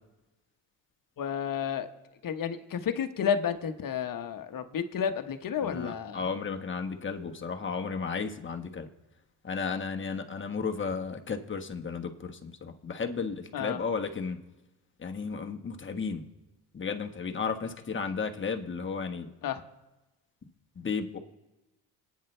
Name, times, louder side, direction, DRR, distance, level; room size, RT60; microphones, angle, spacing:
voice 1, 1.2-1.9 2.2-6.3 13.5-13.8 19.4-19.6, left 8 dB, 45° left, 8 dB, 1.3 m, -31 dB
voice 2, 5.6-8.9 9.4-14.4 15.0-16.2 16.7-19.3 20.7-21.2, left 5 dB, 25° left, 4 dB, 1.5 m, -34 dB
27.5 x 9.5 x 3.3 m, 1.1 s
supercardioid pair, 75°, 45 cm